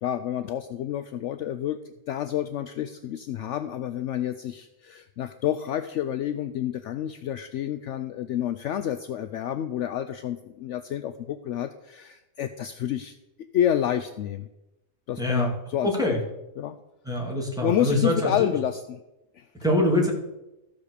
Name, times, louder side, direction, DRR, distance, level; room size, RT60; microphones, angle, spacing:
voice 1, 0.0-1.8 2.1-13.1 13.5-14.5 15.1-15.9 16.6-16.8 17.6-19.0 19.4-19.5, left 10 dB, 70° left, 11 dB, 0.8 m, -29 dB
voice 2, 15.2-15.5 15.8-16.2 17.0-18.3 19.6-20.1, left 1 dB, 5° right, -2 dB, 2.4 m, -24 dB
14.0 x 5.3 x 6.6 m, 0.94 s
omnidirectional pair, 1.4 m